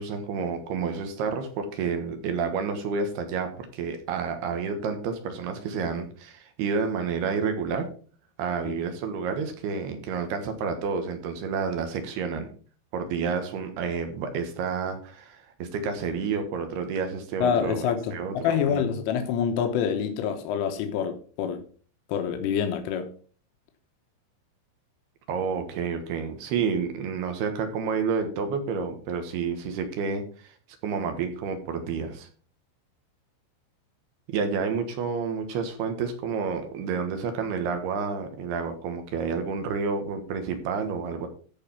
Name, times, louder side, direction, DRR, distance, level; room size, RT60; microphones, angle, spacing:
voice 1, 0.0-7.9 8.4-12.5 12.9-17.9 18.1-18.8 25.3-30.5 30.8-32.3 34.3-41.3, right 5 dB, 65° right, 7 dB, 3.0 m, -30 dB
voice 2, 17.4-21.6 22.1-23.1, left 8 dB, 85° left, 6 dB, 3.6 m, -26 dB
14.0 x 4.9 x 5.7 m, 0.42 s
omnidirectional pair, 5.7 m